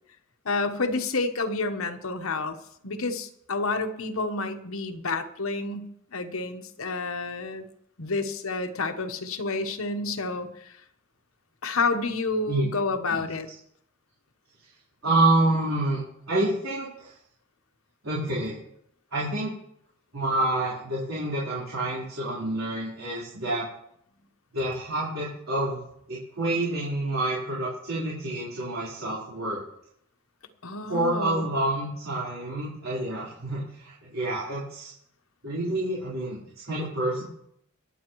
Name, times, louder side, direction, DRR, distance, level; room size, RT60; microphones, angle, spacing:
voice 1, 0.4-2.6 2.8-7.6 8.0-10.8 11.6-13.5 30.6-31.5, left 3 dB, 80° left, 6 dB, 1.1 m, -29 dB
voice 2, 15.0-16.0 16.3-17.1 18.0-18.6 19.1-19.5 20.1-23.7 24.5-25.8 26.1-29.6 30.9-34.9 35.4-37.2, right 2 dB, 75° right, -7 dB, 4.1 m, -28 dB
25.5 x 8.6 x 3.1 m, 0.73 s
head